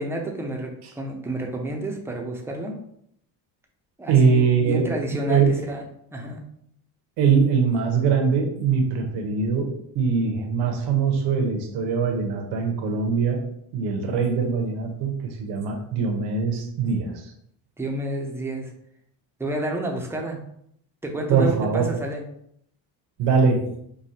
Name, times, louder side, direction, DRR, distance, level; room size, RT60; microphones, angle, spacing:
voice 1, 0.0-2.7 4.0-5.8 6.1-6.4 17.8-18.7 19.4-20.4 21.0-22.2, right 1 dB, 5° right, 1 dB, 0.6 m, -30 dB
voice 2, 4.1-4.9 5.3-5.5 7.2-13.4 13.7-17.3 21.3-21.9 23.2-23.7, right 5 dB, 70° right, 3 dB, 0.9 m, -22 dB
4.9 x 2.3 x 2.8 m, 0.70 s
cardioid pair, 105°, 44 cm